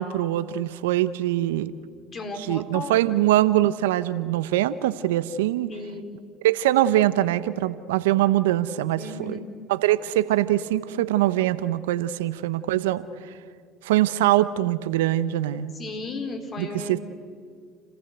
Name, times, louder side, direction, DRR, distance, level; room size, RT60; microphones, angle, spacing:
voice 1, 0.0-1.7 2.5-5.7 6.4-9.4 9.7-13.3 13.8-15.7 16.6-17.0, right 14 dB, 80° right, 15 dB, 0.8 m, -23 dB
voice 2, 2.1-3.2 5.7-6.1 9.0-9.5 15.7-17.0, left 3 dB, 40° left, 6 dB, 3.8 m, -35 dB
29.5 x 15.0 x 8.1 m, 2.2 s
hypercardioid pair, 75°, 0 cm